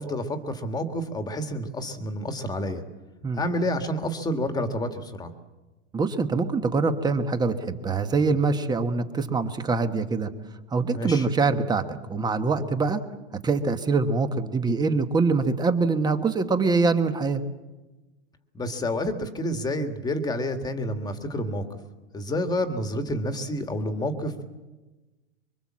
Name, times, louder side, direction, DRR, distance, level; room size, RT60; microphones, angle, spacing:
voice 1, 0.0-2.8 3.3-5.3 10.9-11.3 18.5-21.8 22.1-24.4, left 1 dB, 10° left, 7 dB, 1.8 m, -29 dB
voice 2, 5.9-10.3 10.7-13.0 13.4-17.4, right 4 dB, 10° right, 9 dB, 1.3 m, -24 dB
25.0 x 24.0 x 7.5 m, 1.2 s
hypercardioid pair, 145°, 34 cm